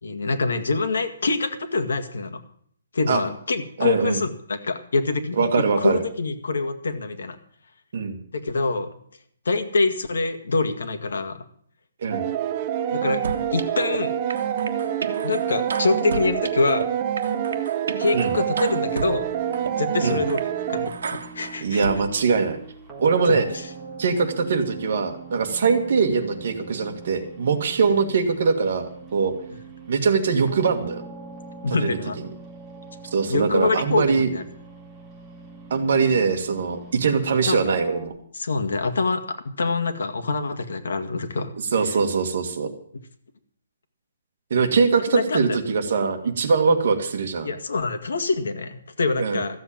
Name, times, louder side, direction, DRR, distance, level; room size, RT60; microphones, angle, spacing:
voice 1, 0.0-2.4 2.9-7.4 8.3-9.0 9.5-11.4 12.9-13.2 13.5-14.1 15.2-16.9 18.0-19.3 19.8-21.8 23.3-23.7 31.6-32.2 33.3-34.4 37.5-37.6 38.3-41.5 41.8-41.9 45.1-45.6 47.4-49.6, left 3 dB, 80° left, 7 dB, 2.0 m, -25 dB
voice 2, 3.8-4.2 5.4-6.0 7.9-8.2 12.0-12.3 18.1-18.3 20.0-20.2 21.6-22.6 23.0-23.5 24.0-29.3 29.9-31.0 31.8-32.0 33.1-34.3 35.7-38.1 41.7-42.7 44.5-47.5 49.2-49.4, right 5 dB, 45° right, 6 dB, 1.8 m, -22 dB
sound 1, 12.1-20.9, right 9 dB, 20° right, 0.6 m, -26 dB
sound 2, 13.2-14.0 14.3-16.9 17.2-19.1 19.5-19.7 20.1-20.4 20.9-22.0, right 4 dB, 65° right, 1.5 m, -33 dB
sound 3, 18.6-38.1, right 4 dB, 5° right, 1.5 m, -43 dB
14.5 x 7.8 x 8.8 m, 0.62 s
hypercardioid pair, 180°, 0 cm